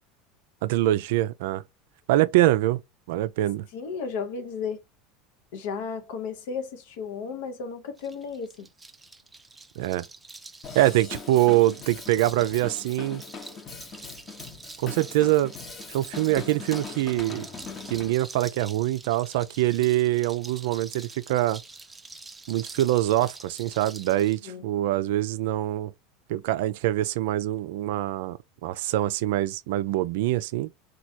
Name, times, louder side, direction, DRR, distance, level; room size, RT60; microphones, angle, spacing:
voice 1, 0.6-1.6 2.1-2.8 3.1-3.7 9.8-10.1 10.7-13.2 14.8-15.5 15.9-17.5 17.9-21.6 22.5-25.9 26.3-30.7, right 15 dB, 70° right, 0.3 m, -24 dB
voice 2, 3.7-4.8 5.5-8.7 24.4-24.6, left 5 dB, 75° left, 0.7 m, -34 dB
sound 1, 8.0-24.4, right 3 dB, 15° right, 0.5 m, -46 dB
Drum kit / Drum, 10.6-18.1, left 5 dB, 40° left, 0.8 m, -41 dB
3.1 x 2.2 x 2.7 m
hypercardioid pair, 90°, 0 cm